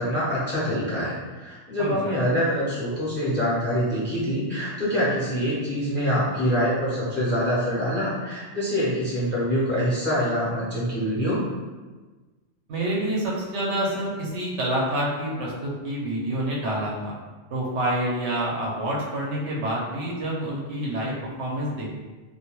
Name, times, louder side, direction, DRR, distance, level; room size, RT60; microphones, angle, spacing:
voice 1, 0.0-11.4, equal, 15° left, -9 dB, 0.5 m, -25 dB
voice 2, 1.8-2.1 12.7-17.1 17.5-21.9, right 1 dB, 70° right, -4 dB, 0.9 m, -27 dB
2.3 x 2.2 x 2.9 m, 1.3 s
omnidirectional pair, 1.2 m